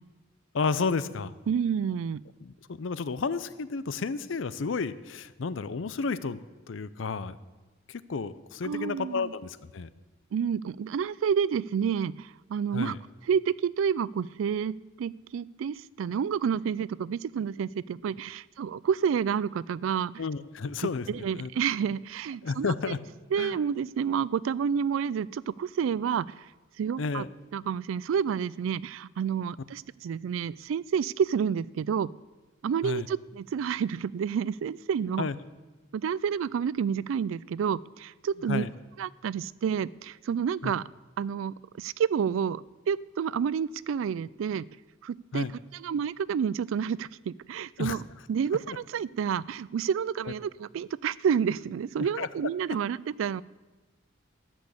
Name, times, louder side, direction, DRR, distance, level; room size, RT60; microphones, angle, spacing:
voice 1, 0.5-1.3 2.4-6.4 6.7-7.4 7.9-9.9 12.7-13.0 20.2-21.5 22.4-23.0 23.4-23.6 27.0-27.3 32.8-33.1 35.2-35.3 38.5-38.7 40.6-40.7 45.3-45.5 47.8-48.0 48.7-48.8 52.0-52.3, left 4 dB, 75° left, 16 dB, 0.5 m, -32 dB
voice 2, 1.5-2.2 8.6-9.3 10.3-13.0 13.3-20.2 21.1-22.9 23.3-26.3 26.8-27.2 27.5-32.1 32.6-35.3 35.9-38.7 39.0-40.8 41.2-44.7 45.0-45.5 45.7-48.0 48.3-53.4, right 7 dB, 85° right, 22 dB, 0.3 m, -29 dB
13.5 x 6.3 x 8.3 m, 1.2 s
head